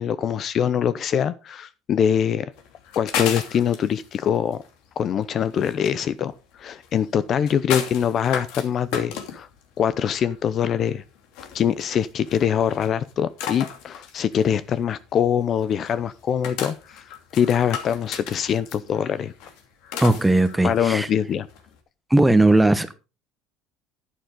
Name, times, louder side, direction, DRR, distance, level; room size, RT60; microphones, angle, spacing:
voice 1, 0.0-2.5 2.9-4.6 5.0-6.3 6.6-9.5 9.8-11.0 11.5-17.0 17.3-19.3 20.6-21.5, left 8 dB, 40° left, 0.6 m, -23 dB
sound 1, 2.5-21.8, left 8 dB, 70° left, 2.8 m, -35 dB
voice 2, 20.0-21.1 22.1-23.1, right 2 dB, 5° right, 1.1 m, -18 dB
11.0 x 9.4 x 3.8 m
cardioid pair, 125°, 0 cm